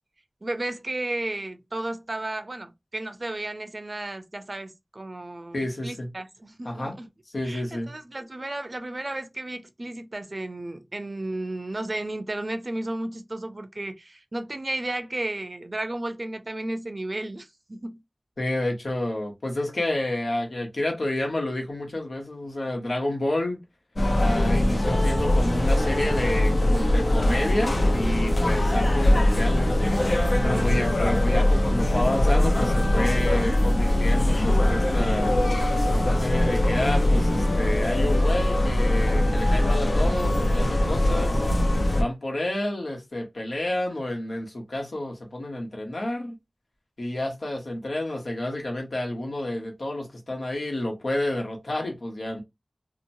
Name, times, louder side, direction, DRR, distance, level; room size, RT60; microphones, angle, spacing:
voice 1, 0.4-5.6 5.8-7.1 7.4-18.0 30.4-30.7, right 1 dB, 55° right, 0.5 m, -33 dB
voice 2, 5.5-6.1 6.6-7.0 7.3-7.9 18.4-23.6 24.2-29.8 30.4-35.4 35.9-41.4 42.0-46.4 47.0-52.4, left 1 dB, 90° left, 1.0 m, -29 dB
sound 1, 24.0-42.0, left 1 dB, 65° left, 0.6 m, -22 dB
2.8 x 2.1 x 2.6 m
wide cardioid pair, 45°, 0 cm